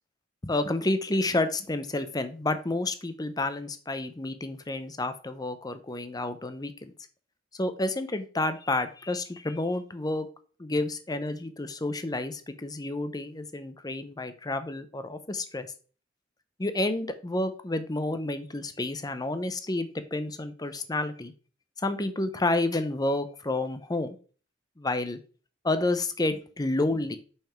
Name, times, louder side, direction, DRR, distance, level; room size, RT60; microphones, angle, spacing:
voice 1, 0.4-6.9 7.5-10.3 10.6-15.7 16.6-21.3 21.8-24.1 24.8-25.2 25.6-27.2, left 2 dB, 20° left, 10 dB, 0.7 m, -30 dB
5.6 x 5.4 x 4.5 m, 0.39 s
head